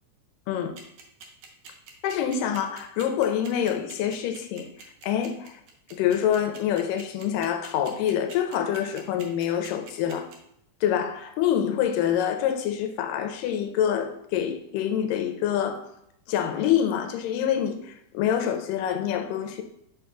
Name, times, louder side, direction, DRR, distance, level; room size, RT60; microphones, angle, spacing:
sound 1, 0.8-10.4, right 6 dB, 75° right, 1.5 m, -45 dB
voice 1, 2.0-4.7 5.0-5.6 5.9-10.3 10.8-15.9 16.3-19.6, left 9 dB, 80° left, 6 dB, 2.2 m, -26 dB
6.7 x 6.4 x 2.3 m, 0.74 s
omnidirectional pair, 4.0 m